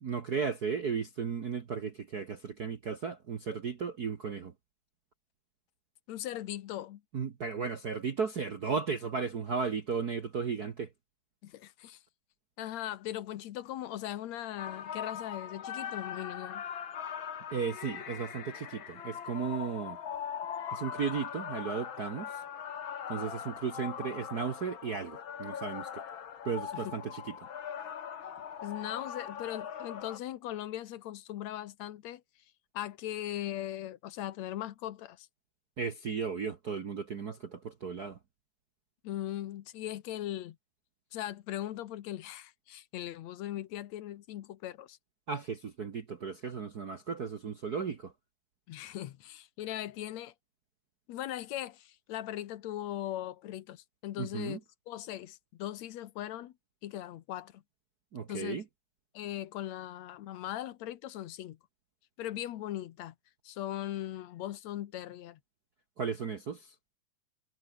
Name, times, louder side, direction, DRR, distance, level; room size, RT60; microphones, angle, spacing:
voice 1, 0.0-4.5 7.1-10.9 17.5-20.0 20.7-22.4 23.1-26.0 26.4-27.3 35.8-38.2 45.3-48.1 54.2-54.6 58.1-58.6 66.0-66.7, right 5 dB, 65° right, 0.9 m, -35 dB
voice 2, 6.1-7.0 11.4-12.0 12.6-16.6 26.7-26.9 28.6-32.2 32.7-35.3 39.0-40.6 41.1-45.0 48.7-50.3 51.1-54.6 54.9-56.5 56.8-57.6 58.3-58.6 59.1-61.6 62.2-63.2 63.4-65.4, left 13 dB, 65° left, 2.0 m, -39 dB
sound 1, 14.6-30.2, left 8 dB, 45° left, 1.9 m, -41 dB
omnidirectional pair, 3.7 m